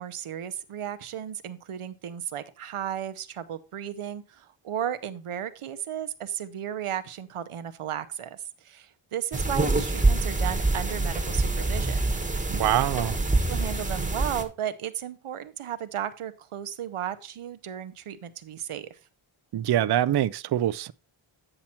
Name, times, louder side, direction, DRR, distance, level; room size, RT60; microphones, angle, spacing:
voice 1, 0.0-12.2 13.5-19.0, right 10 dB, 90° right, 0.8 m, -34 dB
sound 1, 9.3-14.4, right 2 dB, 15° right, 1.3 m, -25 dB
voice 2, 12.5-13.2 19.5-20.9, right 12 dB, 55° right, 0.5 m, -24 dB
8.8 x 5.8 x 4.3 m
wide cardioid pair, 70°, 50 cm